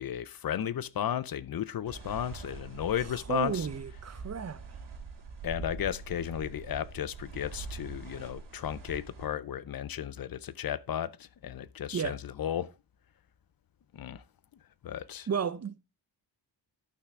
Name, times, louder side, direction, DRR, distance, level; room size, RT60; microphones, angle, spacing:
voice 1, 0.0-3.7 5.4-12.7 13.9-14.2 14.8-15.3, left 10 dB, 55° left, 0.6 m, -34 dB
sound 1, 1.9-9.3, right 4 dB, 70° right, 3.2 m, -44 dB
voice 2, 3.3-4.8 11.9-12.2 15.3-15.8, right 7 dB, 35° right, 0.6 m, -33 dB
12.0 x 5.8 x 3.6 m
wide cardioid pair, 145°, 45 cm